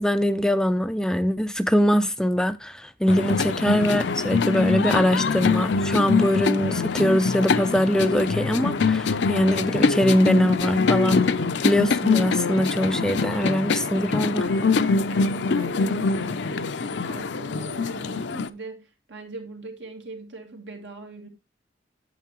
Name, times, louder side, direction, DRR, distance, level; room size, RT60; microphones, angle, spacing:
voice 1, 0.0-11.3 11.6-14.5, equal, 5° left, 0.3 m, -22 dB
sound 1, 3.1-18.5, left 4 dB, 75° left, 0.5 m, -24 dB
voice 2, 14.8-21.3, right 3 dB, 80° right, 2.2 m, -41 dB
9.2 x 7.4 x 2.9 m
head